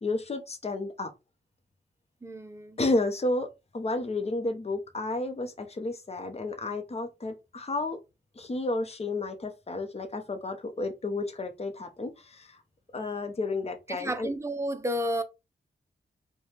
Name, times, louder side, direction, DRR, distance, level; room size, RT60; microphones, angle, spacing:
voice 1, 0.0-1.1 2.8-3.5 3.7-8.0 8.4-12.6 12.9-14.3, left 2 dB, 35° left, 0.8 m, -31 dB
voice 2, 2.2-2.8 13.9-15.2, equal, 15° right, 0.6 m, -31 dB
4.7 x 2.2 x 3.3 m
wide cardioid pair, 125°, 19 cm